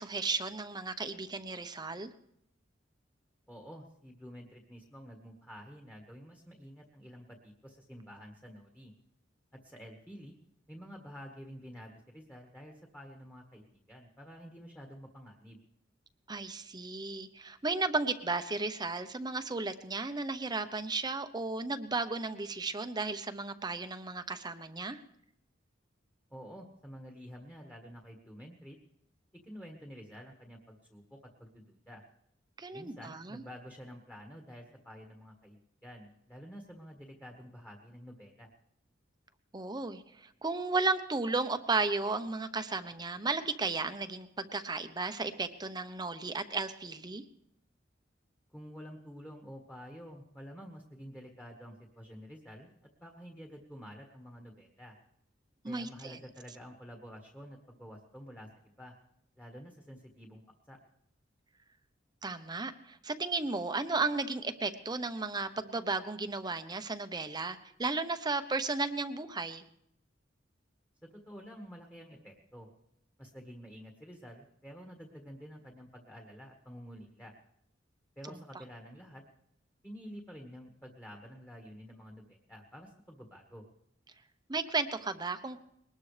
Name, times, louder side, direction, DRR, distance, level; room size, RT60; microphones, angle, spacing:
voice 1, 0.0-2.1 16.3-25.0 32.6-33.4 39.5-47.2 55.6-56.2 62.2-69.6 84.5-85.6, right 3 dB, 20° right, 9 dB, 0.8 m, -34 dB
voice 2, 3.5-8.9 9.6-10.3 10.7-15.6 26.3-28.8 29.4-32.0 32.7-38.5 48.5-52.7 53.0-54.9 55.6-58.5 58.8-59.0 59.4-60.8 71.3-72.7 73.2-77.3 78.2-79.2 79.8-83.6, equal, 10° left, 1 dB, 1.6 m, -49 dB
21.5 x 19.5 x 3.3 m, 0.76 s
head